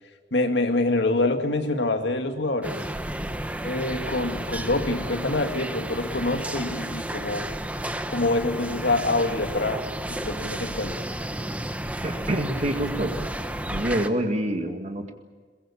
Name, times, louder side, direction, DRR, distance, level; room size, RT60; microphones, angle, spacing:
voice 1, 0.3-2.8 3.6-7.5 8.1-9.8 10.1-11.0, left 2 dB, 70° left, 6 dB, 2.2 m, -26 dB
sound 1, 2.6-14.1, right 1 dB, 10° right, 1.1 m, -32 dB
voice 2, 12.0-13.2 13.7-15.1, right 1 dB, 40° right, 5 dB, 2.0 m, -26 dB
22.5 x 22.0 x 8.5 m, 1.5 s
head